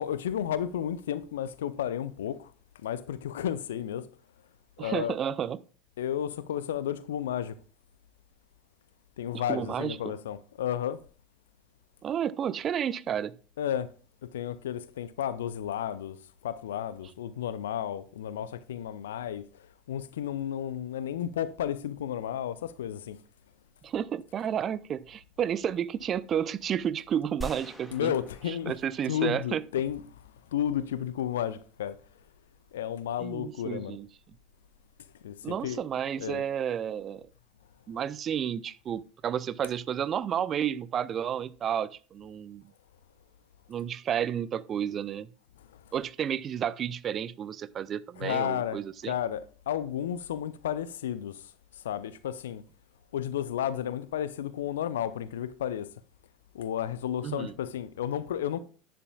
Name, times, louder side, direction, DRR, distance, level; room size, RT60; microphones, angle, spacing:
voice 1, 0.0-2.5 2.8-4.1 4.8-5.2 6.0-7.6 9.2-11.0 13.6-13.9 14.2-16.2 16.4-19.5 19.9-23.2 27.9-28.7 29.1-30.0 30.5-32.0 32.7-34.0 35.2-35.8 36.2-36.4 48.2-48.8 49.1-52.6 53.1-55.9 56.5-58.6, left 10 dB, 70° left, 0.5 m, -32 dB
voice 2, 4.8-5.6 9.3-10.1 12.0-13.4 23.8-28.1 28.5-29.6 33.2-34.1 35.4-37.3 37.9-42.6 43.7-45.3 45.9-49.1 57.2-57.5, right 9 dB, 35° right, 0.5 m, -31 dB
sound 1, 27.4-29.7, right 1 dB, ahead, 1.8 m, -44 dB
11.0 x 10.0 x 2.3 m
figure-of-eight pair, 70°, 0 cm